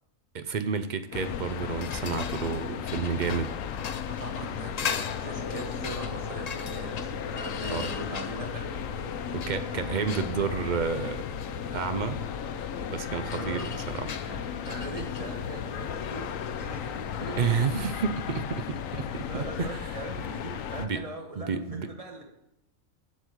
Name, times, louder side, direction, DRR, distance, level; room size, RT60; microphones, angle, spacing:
voice 1, 0.3-3.5 7.6-7.9 9.3-11.3 11.7-12.2 12.9-14.1 17.4-19.3 19.6-20.0 20.8-21.0 21.4-21.9, right 5 dB, 50° right, 10 dB, 0.6 m, -30 dB
sound 1, 1.1-20.9, left 8 dB, 85° left, 1.1 m, -35 dB
sound 2, 1.1-18.6, left 7 dB, 65° left, 0.4 m, -41 dB
voice 2, 4.1-8.7 13.3-13.7 14.1-14.4 14.7-17.4 19.3-22.3, right 1 dB, 25° right, 2 dB, 1.5 m, -41 dB
sound 3, 5.3-16.6, left 1 dB, 20° left, 1.8 m, -44 dB
7.9 x 7.2 x 6.1 m, 0.85 s
omnidirectional pair, 1.4 m